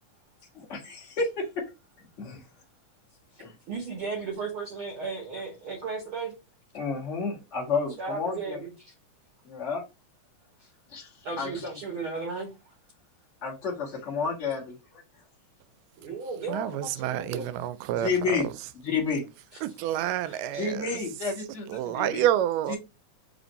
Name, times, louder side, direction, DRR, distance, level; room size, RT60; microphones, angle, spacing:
voice 1, 0.5-1.6 2.2-2.4 3.4-3.5 6.7-8.6 9.4-9.8 10.9-11.1 11.4-11.5 13.4-14.8 18.0-18.5 18.8-19.3 20.6-22.2 22.7-22.8, left 4 dB, 40° left, 0.9 m, -30 dB
voice 2, 3.3-6.3 8.0-8.9 11.2-12.5 16.0-17.5 20.0-20.7, right 4 dB, 65° right, 1.3 m, -35 dB
voice 3, 16.5-18.5 19.6-21.0 21.7-22.8, right 12 dB, 90° right, 2.1 m, -29 dB
4.9 x 2.6 x 4.0 m
omnidirectional pair, 3.7 m